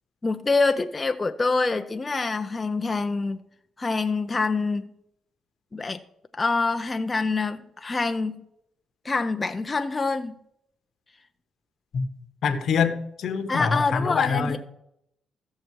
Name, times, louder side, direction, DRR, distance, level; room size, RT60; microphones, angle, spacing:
voice 1, 0.2-3.4 3.8-4.9 5.7-6.0 6.3-8.4 9.0-10.4 13.5-14.6, left 3 dB, 25° left, 0.5 m, -25 dB
voice 2, 12.4-14.6, left 6 dB, 60° left, 1.1 m, -25 dB
15.0 x 6.6 x 4.6 m
cardioid pair, 90°, 0 cm